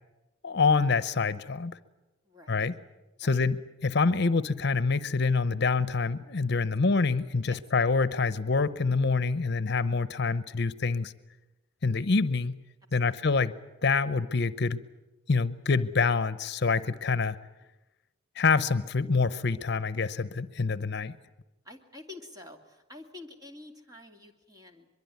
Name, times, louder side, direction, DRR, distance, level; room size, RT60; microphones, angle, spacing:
voice 1, 0.4-1.8 2.5-2.7 3.2-11.1 11.8-12.6 12.9-13.5 13.8-14.8 15.3-17.4 18.4-21.1, left 4 dB, 60° left, 15 dB, 0.8 m, -26 dB
voice 2, 2.2-2.7 3.2-3.4 6.6-6.7 7.4-7.6 13.0-13.2 21.6-24.9, left 2 dB, 20° right, 3 dB, 2.7 m, -48 dB
23.0 x 23.0 x 9.4 m, 1.1 s
head